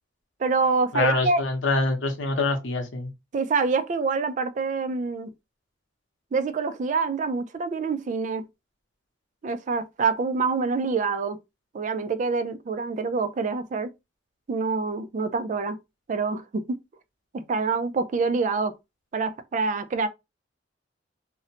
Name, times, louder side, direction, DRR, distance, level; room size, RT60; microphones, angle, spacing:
voice 1, 0.4-1.4 3.3-5.3 6.3-8.5 9.4-11.4 11.7-13.9 14.5-15.8 16.1-16.8 17.3-18.7 19.1-20.1, right 4 dB, 40° right, 0.3 m, -26 dB
voice 2, 0.9-3.1, left 2 dB, 90° left, 0.7 m, -25 dB
2.6 x 2.1 x 2.7 m
head